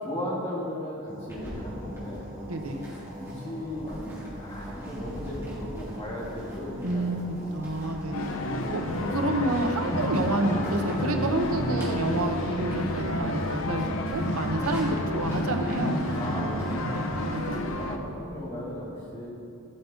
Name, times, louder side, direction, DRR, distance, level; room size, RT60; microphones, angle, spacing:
voice 1, 0.0-2.3 3.1-7.2 8.4-8.8 16.2-19.3, equal, 25° left, -7 dB, 2.8 m, -37 dB
sound 1, 1.1-12.4, equal, 40° right, 2.7 m, -42 dB
sound 2, 1.3-17.9, equal, 10° right, 2.7 m, -44 dB
voice 2, 2.5-2.8 6.8-7.2 7.5-8.3 8.7-8.8 9.1-13.8 14.1-16.0 17.2-17.6, right 2 dB, 80° right, 5 dB, 0.8 m, -29 dB
sound 3, 8.1-18.0, left 1 dB, 70° left, 0.7 m, -30 dB
16.5 x 5.8 x 4.4 m, 2.7 s
head